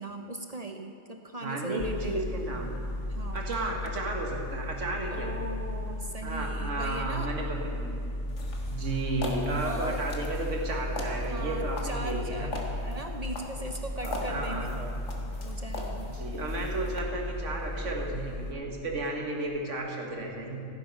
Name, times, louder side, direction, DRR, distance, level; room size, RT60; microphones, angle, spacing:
voice 1, 0.0-2.3 3.1-3.8 5.1-7.3 9.6-10.0 11.3-15.0 15.4-16.1, right 2 dB, 40° right, 4 dB, 0.6 m, -39 dB
voice 2, 1.4-2.7 3.3-5.3 6.2-8.0 8.7-12.5 14.0-14.9 16.0-20.6, right 2 dB, 60° right, 0 dB, 1.8 m, -33 dB
sound 1, 1.8-18.5, left 1 dB, 20° left, 0.7 m, -35 dB
sound 2, 8.3-17.0, left 2 dB, 60° left, 1.7 m, -41 dB
15.5 x 9.3 x 5.4 m, 2.5 s
omnidirectional pair, 1.4 m